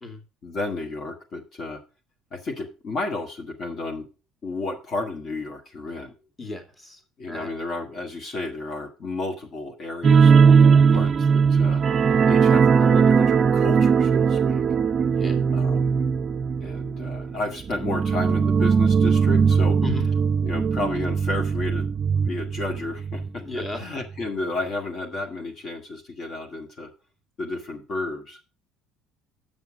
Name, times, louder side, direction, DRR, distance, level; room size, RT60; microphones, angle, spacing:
voice 1, 0.4-1.8 2.3-4.1 4.4-6.1 7.2-11.1 11.5-11.8 12.3-14.6 15.5-15.9 16.6-19.8 20.4-26.9 27.4-28.4, left 2 dB, 45° left, 1 dB, 2.0 m, -32 dB
voice 2, 6.4-7.0 7.3-7.5 10.9-11.1 15.2-15.5 19.8-20.1 23.3-23.8, left 3 dB, 15° left, 4 dB, 2.2 m, -35 dB
sound 1, 10.0-23.3 23.6-23.8 24.2-24.3, right 6 dB, 35° right, 0.4 m, -19 dB
7.4 x 5.9 x 6.3 m, 0.33 s
supercardioid pair, 100°, 0 cm